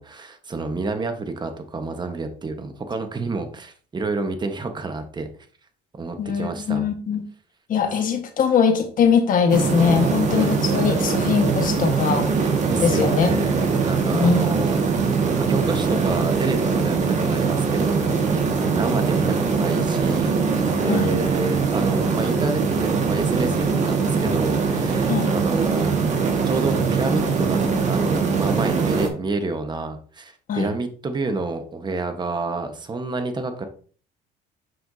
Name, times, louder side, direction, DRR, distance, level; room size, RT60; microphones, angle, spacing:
voice 1, 0.0-5.3 5.9-6.9 12.6-15.1 15.4-25.9 26.4-33.6, right 3 dB, 25° right, 1.2 m, -29 dB
voice 2, 6.2-7.2 7.7-12.3 12.8-13.3 14.1-14.4 20.9-21.2 25.1-25.3 30.5-30.8, left 6 dB, 55° left, 1.6 m, -21 dB
sound 1, 9.5-29.1, right 5 dB, 45° right, 1.8 m, -22 dB
7.8 x 5.8 x 2.8 m
cardioid pair, 110°, 17 cm